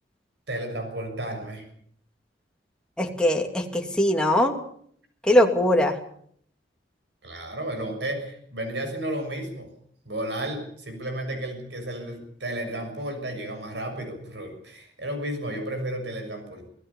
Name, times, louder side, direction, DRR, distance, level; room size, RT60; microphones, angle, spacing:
voice 1, 0.5-1.6 7.2-9.7 10.0-16.7, right 1 dB, 85° right, 5 dB, 6.7 m, -33 dB
voice 2, 3.0-4.5 5.3-6.0, left 1 dB, 5° left, 2 dB, 2.5 m, -21 dB
26.0 x 17.5 x 7.1 m, 0.63 s
head